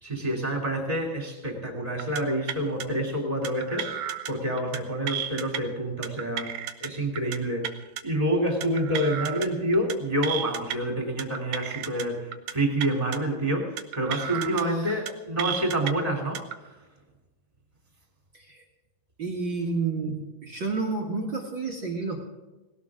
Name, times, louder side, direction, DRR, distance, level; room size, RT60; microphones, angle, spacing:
voice 1, 0.0-3.9 4.3-7.7 8.0-16.4, right 1 dB, 10° right, 1 dB, 2.5 m, -28 dB
sound 1, 2.0-2.2 2.5-2.8 3.4-4.3 4.6-4.8 5.1-5.6 6.0-6.9 7.2-7.4 7.6-8.0 8.6-9.5 9.7-9.9 10.2-10.8 11.2-12.0 12.3-12.5 12.8-13.2 13.8-14.6 14.9-15.1 15.4-15.9 16.3-16.5, right 10 dB, 85° right, 1.6 m, -33 dB
voice 2, 18.3-18.6 19.2-22.2, right 4 dB, 40° right, -1 dB, 1.7 m, -30 dB
19.0 x 18.0 x 3.7 m, 1.1 s
omnidirectional pair, 4.7 m